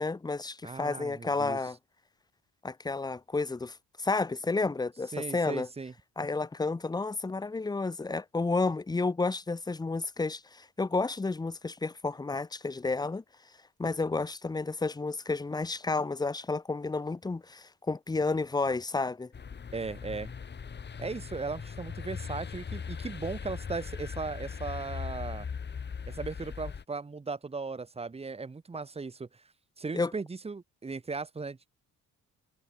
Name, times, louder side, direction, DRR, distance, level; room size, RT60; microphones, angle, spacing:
voice 1, 0.0-1.8 2.6-5.7 6.2-13.2 13.8-19.3 29.9-30.1, left 3 dB, 15° left, 0.7 m, -31 dB
voice 2, 0.6-1.6 5.1-5.9 19.7-20.3 21.0-25.5 26.1-29.3 29.8-31.7, right 4 dB, 20° right, 1.1 m, -37 dB
sound 1, 19.3-26.8, left 6 dB, 35° left, 1.6 m, -39 dB
cardioid pair, 90°, 30 cm